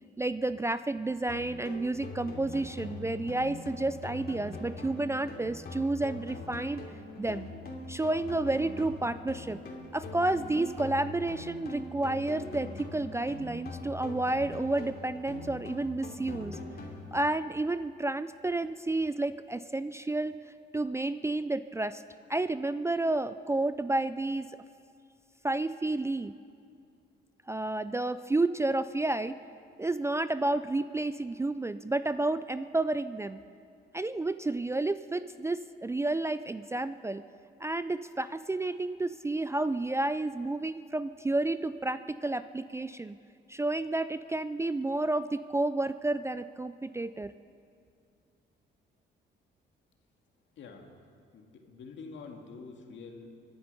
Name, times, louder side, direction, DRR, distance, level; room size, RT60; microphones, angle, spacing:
voice 1, 0.2-6.8 7.2-7.5 7.9-9.6 9.9-16.6 17.1-20.4 20.7-22.0 22.3-24.5 25.4-26.3 27.5-29.4 29.8-33.4 33.9-37.2 37.6-43.2 43.5-47.3, right 2 dB, 15° right, 13 dB, 0.4 m, -31 dB
sound 1, 1.3-17.3, left 3 dB, 50° left, 3.0 m, -42 dB
voice 2, 50.6-51.0 51.3-53.3, left 4 dB, 70° left, 3 dB, 2.0 m, -46 dB
24.5 x 10.5 x 5.5 m, 2.3 s
cardioid pair, 90°, 20 cm